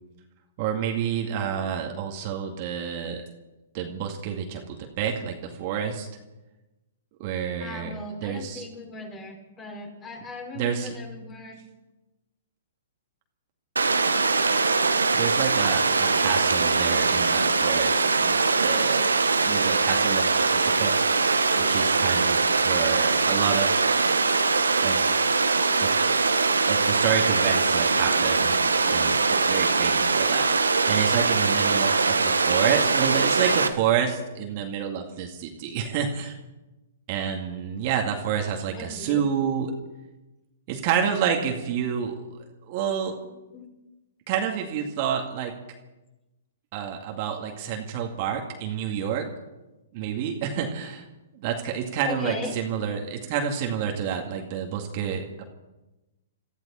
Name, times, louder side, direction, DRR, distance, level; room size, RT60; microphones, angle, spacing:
voice 1, 0.6-3.2 3.7-6.1 7.2-7.9 8.2-8.6 10.5-10.9 15.1-19.1 19.4-23.9 24.8-25.3 25.7-26.2 26.7-28.6 28.9-36.4 37.1-39.7 40.7-42.3 42.6-43.1 44.3-45.5 46.7-49.3 49.9-51.1 51.3-55.4, right 8 dB, 45° right, 2 dB, 2.2 m, -29 dB
voice 2, 7.6-11.6 38.7-39.2 43.2-43.7 52.1-52.5, left 3 dB, 20° left, 1 dB, 5.2 m, -38 dB
Water, 13.8-33.7, right 4 dB, 90° right, 1.3 m, -22 dB
22.5 x 14.5 x 4.4 m, 1.0 s
hypercardioid pair, 125°, 0 cm